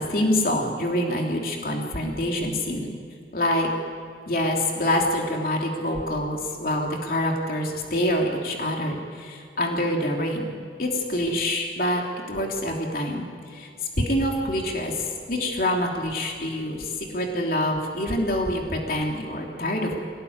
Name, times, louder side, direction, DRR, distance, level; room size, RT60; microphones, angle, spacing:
voice 1, 0.0-2.9 3.3-3.7 4.3-10.5 10.8-12.0 12.3-13.7 14.0-20.0, left 1 dB, 55° left, 0 dB, 3.2 m, -26 dB
25.0 x 18.0 x 9.7 m, 2.3 s
head